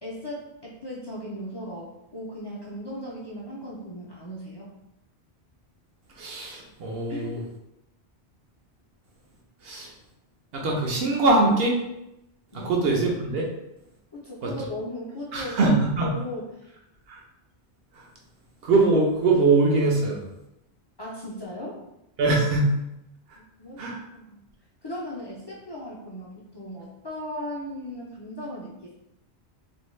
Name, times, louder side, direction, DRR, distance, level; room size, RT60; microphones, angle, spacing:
voice 1, 0.0-4.7 7.1-7.5 12.5-12.7 14.1-16.7 21.0-21.8 23.6-23.8 24.1-24.4 24.8-29.0, left 1 dB, 35° left, -6 dB, 0.4 m, -37 dB
voice 2, 6.1-7.4 9.6-9.9 10.5-11.8 12.5-13.5 14.4-14.5 15.3-16.2 17.1-17.2 17.9-18.1 18.6-20.2 22.2-22.8 23.3-23.4 23.8-24.0, right 3 dB, 65° right, -1 dB, 0.9 m, -22 dB
2.6 x 2.2 x 3.1 m, 0.85 s
omnidirectional pair, 1.1 m